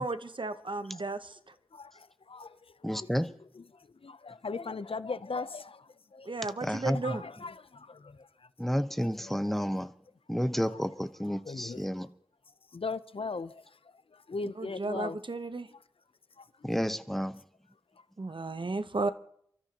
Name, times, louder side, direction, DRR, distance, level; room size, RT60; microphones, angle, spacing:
voice 1, 0.0-1.4 6.2-7.2 14.6-15.7 18.2-19.1, right 3 dB, 60° right, 0.9 m, -34 dB
voice 2, 0.5-1.4 1.7-6.6 6.9-8.5 9.0-9.4 10.4-10.9 11.4-11.9 12.5-15.2 15.7-15.8 16.4-16.7 17.9-18.1 18.6-18.7, left 4 dB, 85° left, 0.6 m, -41 dB
voice 3, 2.8-3.3 6.6-7.2 8.6-9.9 10.3-12.1 16.6-17.4, equal, 5° left, 0.9 m, -31 dB
29.5 x 13.0 x 2.9 m
wide cardioid pair, 50°, 9 cm